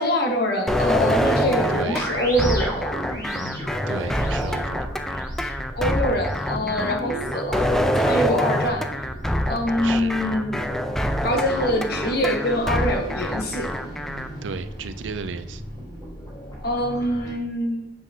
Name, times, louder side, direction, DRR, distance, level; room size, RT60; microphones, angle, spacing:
voice 1, 0.0-2.9 5.7-7.7 7.9-8.8 9.5-10.6 11.2-13.7 16.6-17.9, left 1 dB, 60° left, 2 dB, 1.2 m, -24 dB
sound 1, 0.7-14.3, equal, ahead, 0.4 m, -25 dB
sound 2, 0.8-17.3, equal, 20° left, 1.5 m, -34 dB
voice 2, 1.7-2.1 3.4-5.0 9.8-10.2 14.4-15.6, right 5 dB, 85° right, 12 dB, 0.4 m, -34 dB
7.5 x 5.8 x 2.7 m, 0.92 s
head